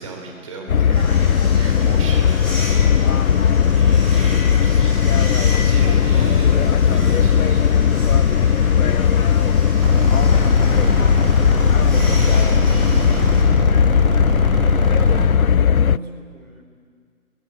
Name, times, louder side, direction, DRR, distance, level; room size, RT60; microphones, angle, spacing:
voice 1, 0.0-3.0 3.7-5.0 5.5-6.5 6.8-7.7, right 2 dB, 25° right, 1 dB, 3.5 m, -35 dB
sound 1, 0.7-16.0, left 7 dB, 80° left, 0.6 m, -16 dB
sound 2, 0.9-13.4, left 1 dB, ahead, 5.9 m, -33 dB
voice 2, 6.3-9.7 10.3-14.3 15.0-16.6, right 2 dB, 90° right, 4 dB, 4.9 m, -37 dB
sound 3, 9.8-15.4, right 3 dB, 40° right, 3.2 m, -23 dB
22.5 x 21.0 x 8.3 m, 2.1 s
figure-of-eight pair, 155°, 42 cm